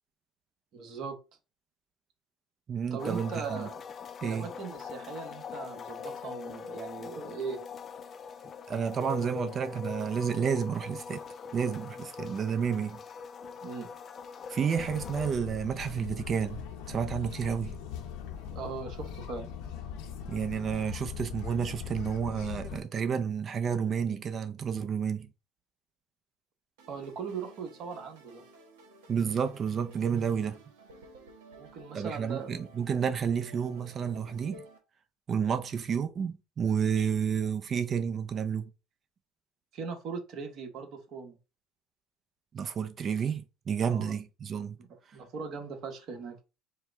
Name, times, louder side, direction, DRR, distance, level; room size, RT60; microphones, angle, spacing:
voice 1, 0.7-1.2 2.9-3.8 4.2-7.6 13.6-13.9 18.5-19.5 26.9-28.4 31.5-32.6 39.7-41.4 43.9-44.1 45.1-46.4, right 5 dB, 55° right, 1.3 m, -39 dB
voice 2, 2.7-3.7 4.2-4.5 8.7-11.2 11.5-13.0 14.5-17.8 20.3-25.3 29.1-30.6 31.9-34.6 35.3-38.7 42.5-44.8, right 7 dB, 40° right, 0.6 m, -30 dB
sound 1, 3.0-15.3, left 6 dB, 35° left, 0.5 m, -42 dB
sound 2, 14.7-22.8, left 8 dB, 75° left, 0.8 m, -40 dB
sound 3, 26.8-34.8, right 2 dB, 90° right, 1.0 m, -54 dB
4.6 x 2.2 x 3.5 m
supercardioid pair, 95°, 0 cm